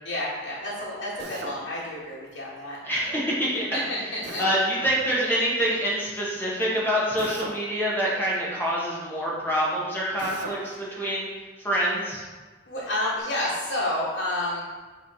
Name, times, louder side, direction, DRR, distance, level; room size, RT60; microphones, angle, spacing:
voice 1, 0.0-2.8 3.7-4.4 12.7-14.6, left 1 dB, 90° left, -8 dB, 1.6 m, -30 dB
Drill, 1.2-1.6 4.2-4.6 7.2-7.6 10.2-10.6, right 2 dB, 80° right, 0.8 m, -36 dB
voice 2, 2.8-3.7 4.4-11.3 11.6-12.2, equal, 10° left, -6 dB, 1.6 m, -26 dB
9.7 x 3.4 x 4.3 m, 1.4 s
head